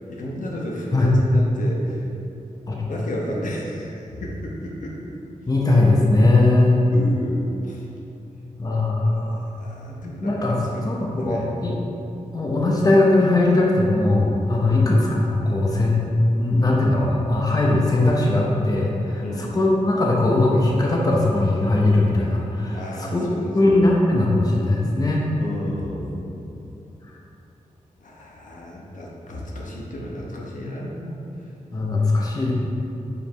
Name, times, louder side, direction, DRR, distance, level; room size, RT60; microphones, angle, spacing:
voice 1, 0.1-2.0 2.9-5.0 6.9-7.9 9.0-10.9 11.2-11.5 14.6-14.9 19.2-19.6 22.7-23.7 25.4-26.5 28.0-31.2 32.1-32.2, left 1 dB, 75° left, -3 dB, 1.0 m, -33 dB
voice 2, 5.5-6.8 8.6-9.4 9.9-11.8 12.3-16.0 16.4-23.2 23.5-25.2 31.7-32.5, left 2 dB, 30° left, -3 dB, 0.8 m, -19 dB
5.4 x 4.6 x 4.5 m, 2.9 s
wide cardioid pair, 115°, 14 cm